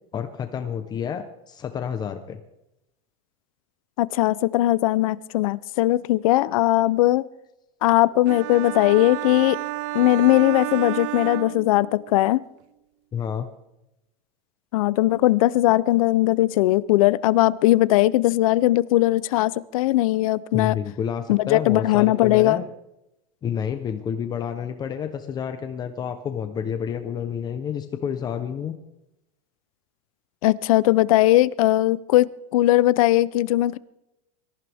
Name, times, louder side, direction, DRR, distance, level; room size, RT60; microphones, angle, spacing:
voice 1, 0.1-2.4 13.1-13.5 20.5-22.7 23.4-28.7, left 8 dB, 25° left, 8 dB, 0.9 m, -29 dB
voice 2, 4.0-7.2 7.8-9.6 9.9-12.4 14.7-20.7 21.3-22.6 30.4-32.3 32.5-33.8, left 16 dB, 75° left, 18 dB, 0.7 m, -19 dB
sound 1, 8.3-12.2, right 16 dB, 55° right, 0.5 m, -31 dB
24.5 x 14.5 x 3.6 m, 0.89 s
supercardioid pair, 155°, 18 cm